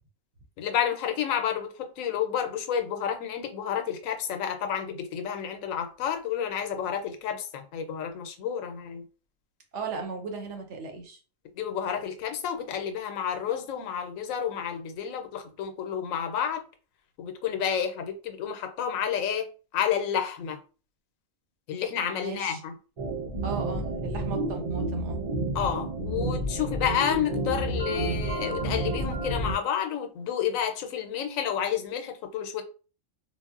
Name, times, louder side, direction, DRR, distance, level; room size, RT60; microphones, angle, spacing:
voice 1, 0.6-9.0 11.6-16.6 17.2-19.5 19.7-20.6 21.7-22.7 25.5-32.6, left 8 dB, 85° left, 1.0 m, -30 dB
voice 2, 9.7-11.2 22.2-22.6 23.4-25.2, right 4 dB, 70° right, 0.9 m, -36 dB
sound 1, 23.0-29.5, right 2 dB, 50° right, 0.4 m, -30 dB
3.7 x 2.0 x 2.4 m
omnidirectional pair, 1.4 m